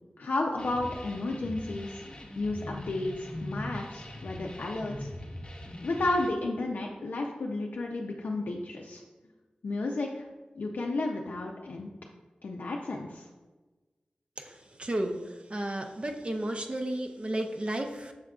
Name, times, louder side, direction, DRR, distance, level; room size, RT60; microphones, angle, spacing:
voice 1, 0.2-2.0 2.4-5.1 5.8-9.0 9.6-10.3 10.6-11.9 12.4-13.3, left 2 dB, 80° left, -1 dB, 0.4 m, -32 dB
sound 1, 0.6-6.3, left 1 dB, 35° left, 0.7 m, -41 dB
voice 2, 14.4-18.1, right 1 dB, 40° right, 4 dB, 0.5 m, -33 dB
6.3 x 3.6 x 2.3 m, 1.2 s
wide cardioid pair, 65°, 3 cm